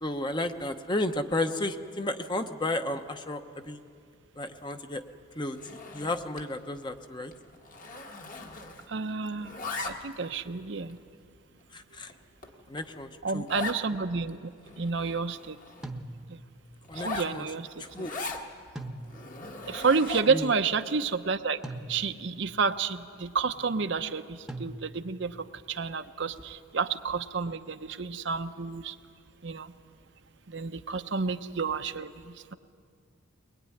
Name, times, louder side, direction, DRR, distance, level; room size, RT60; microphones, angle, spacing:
voice 1, 0.0-3.8 4.4-5.0 5.4-5.6 5.9-7.3 11.7-12.1 12.7-13.5 16.9-17.5 17.8-18.1 20.3-20.5, left 1 dB, 20° left, 7 dB, 0.9 m, -32 dB
Zipper (clothing), 5.5-6.5 6.8-7.1 7.3-9.0 9.3-10.3 10.9-11.0 11.6-11.7 12.1-12.2 12.4-12.5 12.8-12.9 13.5-13.8 14.3-14.4 14.6-15.9 16.8-18.5 19.0-20.4, left 3 dB, 40° left, 1.6 m, -39 dB
voice 2, 8.9-11.0 13.2-14.5 14.8-15.6 16.3-16.4 16.9-17.8 19.6-21.6 21.9-29.0 29.4-29.7 30.5-32.5, right 4 dB, 60° right, 9 dB, 0.7 m, -30 dB
sound 1, 15.8-16.6 18.8-19.5 21.6-22.4 24.5-25.3, right 1 dB, 5° right, 1.0 m, -41 dB
22.5 x 21.0 x 9.7 m, 2.3 s
head